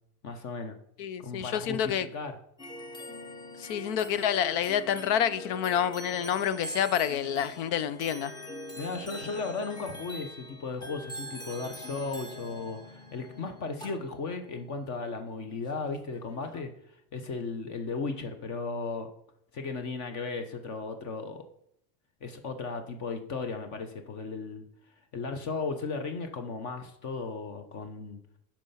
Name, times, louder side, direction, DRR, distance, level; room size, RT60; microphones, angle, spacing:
voice 1, 0.2-0.8 1.2-2.3 8.8-16.7 17.1-19.1 19.5-21.4 22.2-24.6 25.1-28.2, left 4 dB, 45° left, 1.0 m, -35 dB
voice 2, 1.0-2.1 3.6-8.3, left 9 dB, 85° left, 0.9 m, -28 dB
sound 1, 2.6-16.6, equal, 10° left, 0.6 m, -44 dB
12.0 x 4.5 x 5.7 m
cardioid pair, 175°, 42 cm